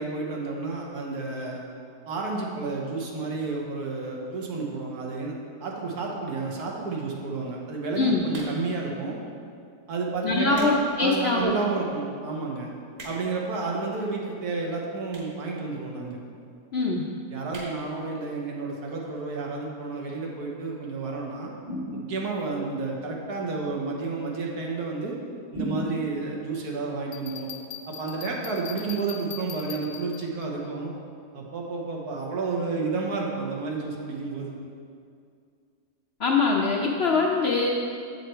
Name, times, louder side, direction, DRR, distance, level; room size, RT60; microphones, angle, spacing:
voice 1, 0.0-1.6 2.1-5.4 5.6-9.2 9.9-10.7 11.0-12.7 13.0-16.2 17.3-21.5 22.1-25.2 25.5-27.5 27.9-30.9 31.3-34.5, right 3 dB, 80° right, -1 dB, 1.6 m, -31 dB
sound 1, 8.3-8.8 9.6-9.8 10.3-10.8 11.2-11.3 12.0-12.1 12.2-12.3 12.6-13.4 14.2-14.3 15.1-15.4 15.7-15.8 16.0-16.1 16.3-16.4 16.7-17.0 17.5-17.8 18.2-18.3 18.4-18.5, right 2 dB, 55° right, 1.9 m, -43 dB
voice 2, 10.2-11.5 16.7-17.0 36.2-37.7, left 3 dB, 60° left, -1 dB, 0.6 m, -23 dB
sound 2, 21.6-22.5 25.5-26.4, right 1 dB, 30° right, 1.0 m, -33 dB
Bell, 27.1-30.5, left 9 dB, 75° left, 1.2 m, -41 dB
7.5 x 5.7 x 4.4 m, 2.3 s
omnidirectional pair, 1.6 m